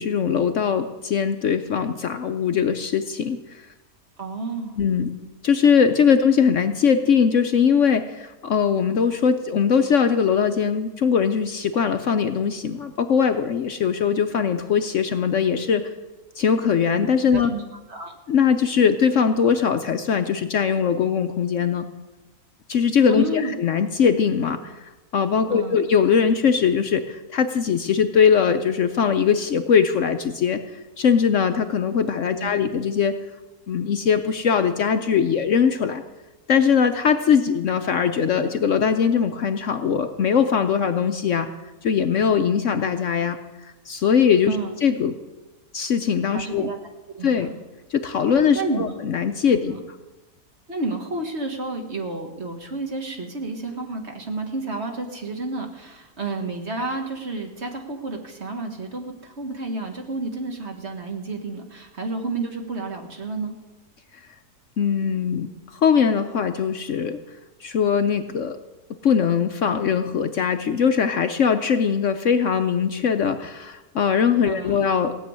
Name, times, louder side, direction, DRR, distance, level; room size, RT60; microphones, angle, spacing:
voice 1, 0.0-3.6 4.8-5.1 5.4-15.8 16.4-17.5 18.3-21.9 22.7-30.6 31.0-33.2 33.7-36.0 36.5-41.5 41.8-45.1 45.7-46.7 47.2-47.5 47.9-49.8 64.8-65.5 65.7-67.2 67.6-68.6 69.0-75.2, left 7 dB, 60° left, 8 dB, 0.9 m, -21 dB
voice 2, 4.2-4.8 17.3-17.6 17.9-18.1 23.1-23.5 25.5-25.8 32.4-32.5 44.5-44.7 46.3-46.8 47.1-47.6 48.5-48.9 49.6-49.8 50.7-63.5 74.4-74.9, right 2 dB, 45° right, 3 dB, 1.9 m, -30 dB
16.5 x 6.9 x 9.6 m, 1.1 s
omnidirectional pair, 1.7 m